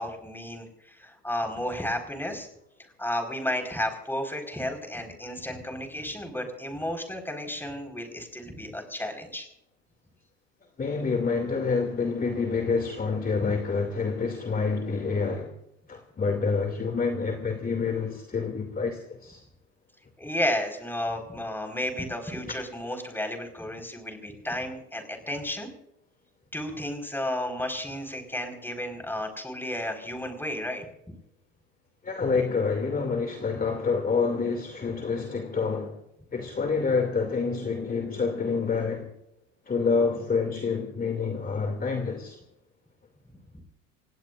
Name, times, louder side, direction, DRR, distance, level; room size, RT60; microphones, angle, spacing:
voice 1, 0.0-2.5 3.0-9.5 20.2-25.7 26.5-30.8 43.5-43.6, left 1 dB, 5° left, 4.9 m, -32 dB
voice 2, 10.8-15.5 15.9-19.4 32.0-36.0 36.3-39.1 39.7-42.4, left 4 dB, 20° left, 2.7 m, -27 dB
28.0 x 17.5 x 2.6 m
hypercardioid pair, 75°, 39 cm